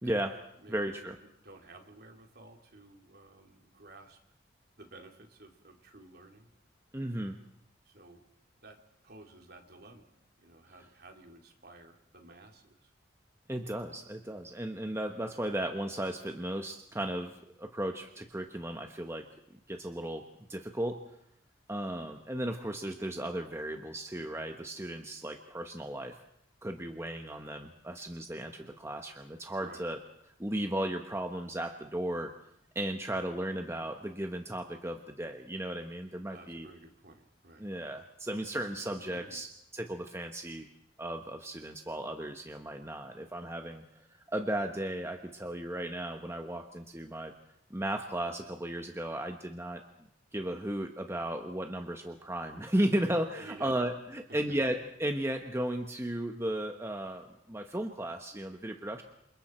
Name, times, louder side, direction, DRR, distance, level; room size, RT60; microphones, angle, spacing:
voice 1, 0.0-0.4 0.7-1.2 6.9-7.4 13.5-20.2 20.5-21.0 21.7-26.2 26.6-30.0 30.4-32.3 32.7-36.7 37.6-39.5 39.7-40.7 41.0-43.8 44.3-47.3 47.7-49.8 50.3-59.0, right 1 dB, 15° right, 4 dB, 1.2 m, -35 dB
voice 2, 0.6-1.1 1.4-4.2 4.8-6.5 7.8-8.2 8.6-8.8 9.0-10.1 10.4-12.9 29.6-29.9 36.3-37.7 38.7-39.4 53.4-53.8 54.3-54.6, right 2 dB, 55° right, 3 dB, 2.9 m, -53 dB
28.5 x 25.0 x 4.5 m, 0.76 s
head